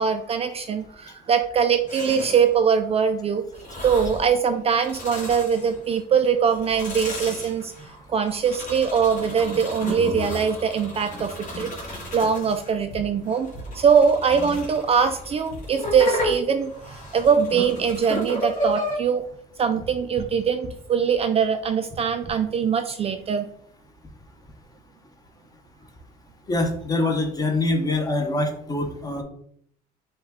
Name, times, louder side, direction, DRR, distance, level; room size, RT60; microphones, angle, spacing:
voice 1, 0.0-3.4 3.8-11.7 12.1-19.2 19.6-23.5, right 6 dB, 35° right, 8 dB, 0.4 m, -22 dB
sound 1, 1.9-2.5 3.5-4.3 4.7-6.0 6.5-12.7 13.3-19.0, equal, 45° left, 1.8 m, -33 dB
sound 2, 11.9-12.3 12.6-12.7 12.9-14.9 15.2-15.3 15.5-17.0, left 2 dB, 75° left, 1.4 m, -43 dB
voice 2, 26.5-29.2, left 2 dB, 20° left, 3 dB, 0.8 m, -24 dB
5.2 x 2.3 x 3.5 m, 0.67 s
cardioid pair, 110°, 17 cm